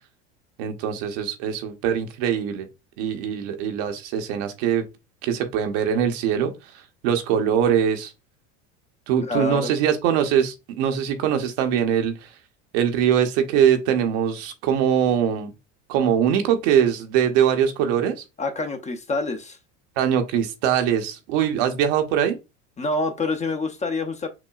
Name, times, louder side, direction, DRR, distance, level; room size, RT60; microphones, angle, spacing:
voice 1, 0.6-2.7 3.0-4.8 5.2-8.1 9.1-12.3 12.7-15.5 15.9-18.2 20.0-22.4, right 8 dB, 70° right, 0.9 m, -22 dB
voice 2, 9.2-9.7 18.4-19.6 22.8-24.3, left 3 dB, 20° left, 0.6 m, -26 dB
5.9 x 2.2 x 2.3 m
supercardioid pair, 100°, 34 cm